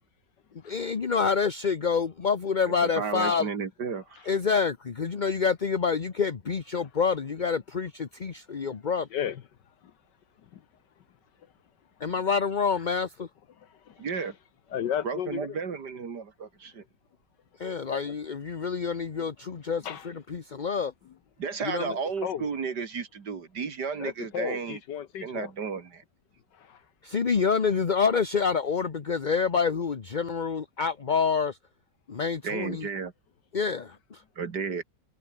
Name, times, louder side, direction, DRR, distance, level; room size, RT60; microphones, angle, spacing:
voice 1, 0.6-3.5 4.3-9.1 12.0-13.3 17.6-19.8 20.3-20.9 21.6-21.9 27.0-31.6 32.1-32.9 33.5-34.2, left 5 dB, 35° left, 0.8 m, -27 dB
voice 2, 2.8-4.3 14.0-14.3 15.0-16.8 21.4-24.8 25.2-26.0 32.4-33.1 34.4-34.8, right 5 dB, 60° right, 2.5 m, -33 dB
voice 3, 9.1-9.4 12.7-12.8 13.9-14.3 14.7-15.6 18.1-18.2 19.8-20.1 21.0-21.1 21.9-22.5 24.0-25.5 26.7-26.8, left 9 dB, 70° left, 1.6 m, -34 dB
omnidirectional pair, 2.0 m